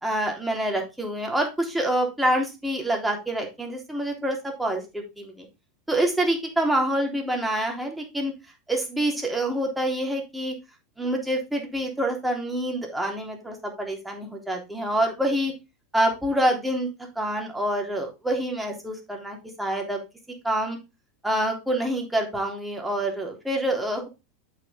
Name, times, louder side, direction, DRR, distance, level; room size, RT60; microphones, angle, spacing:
voice 1, 0.0-5.5 5.9-8.3 8.7-10.5 11.0-15.5 15.9-16.9 17.2-20.0 20.4-20.8 21.2-24.1, right 1 dB, 5° right, 1 dB, 3.4 m, -26 dB
8.0 x 6.6 x 3.7 m, 0.25 s
hypercardioid pair, 90°, 0 cm